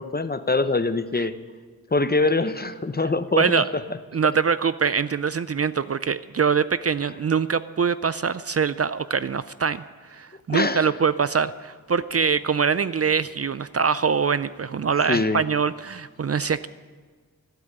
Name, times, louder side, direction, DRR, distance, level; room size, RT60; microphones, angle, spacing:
voice 1, 0.0-1.3 1.9-3.8 10.5-10.9 15.1-15.4, left 3 dB, 25° left, 12 dB, 0.7 m, -23 dB
voice 2, 3.4-3.7 4.1-9.8 10.1-16.7, right 6 dB, 45° right, 15 dB, 0.4 m, -23 dB
12.5 x 12.0 x 7.9 m, 1.5 s
wide cardioid pair, 70°, 36 cm